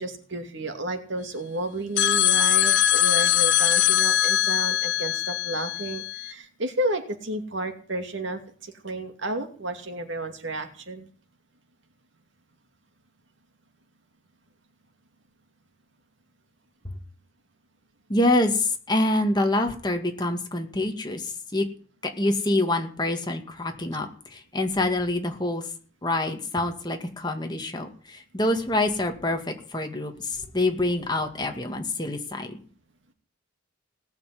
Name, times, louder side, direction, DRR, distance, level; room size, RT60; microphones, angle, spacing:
voice 1, 0.0-11.1, right 1 dB, 60° right, 5 dB, 2.5 m, -32 dB
sound 1, 2.0-6.3, left 11 dB, 60° left, 0.8 m, -22 dB
voice 2, 18.1-21.6 22.2-25.6 26.0-32.5, left 1 dB, 20° left, 4 dB, 2.1 m, -26 dB
18.5 x 7.3 x 9.5 m, 0.42 s
head